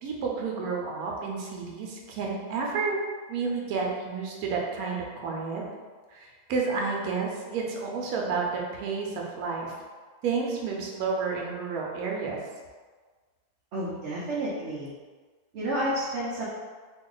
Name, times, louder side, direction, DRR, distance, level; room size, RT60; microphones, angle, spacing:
voice 1, 0.0-3.0 3.3-5.6 6.1-9.7 10.2-12.4, right 4 dB, 85° right, -1 dB, 1.1 m, -30 dB
voice 2, 13.7-14.9 15.5-16.5, right 1 dB, 60° right, -7 dB, 0.8 m, -30 dB
2.7 x 2.3 x 3.7 m, 1.4 s
omnidirectional pair, 1.5 m